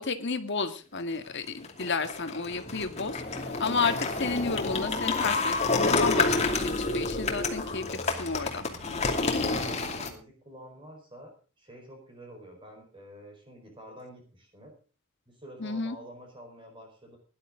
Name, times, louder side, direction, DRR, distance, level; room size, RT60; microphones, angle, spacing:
voice 1, 0.0-8.6 15.6-16.0, left 4 dB, 55° left, 8 dB, 1.8 m, -32 dB
sound 1, 1.5-10.1, left 3 dB, 30° left, 2.7 m, -29 dB
voice 2, 9.3-14.7 15.3-17.2, equal, 25° right, 2 dB, 4.7 m, -48 dB
18.0 x 11.5 x 3.8 m, 0.36 s
head